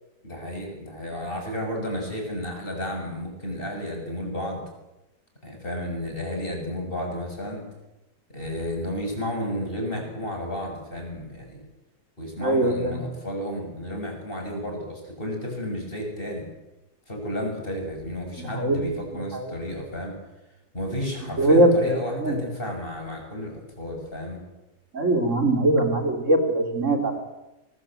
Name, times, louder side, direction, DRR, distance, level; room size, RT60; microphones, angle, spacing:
voice 1, 0.2-4.6 5.4-7.7 8.3-11.6 12.2-16.5 17.1-20.1 20.7-24.4, equal, 35° left, 1 dB, 7.5 m, -32 dB
voice 2, 12.4-13.1 18.4-18.9 19.3-19.5 21.4-22.4 24.9-27.2, right 1 dB, 45° right, 6 dB, 4.0 m, -21 dB
24.5 x 19.0 x 9.0 m, 0.97 s
omnidirectional pair, 1.7 m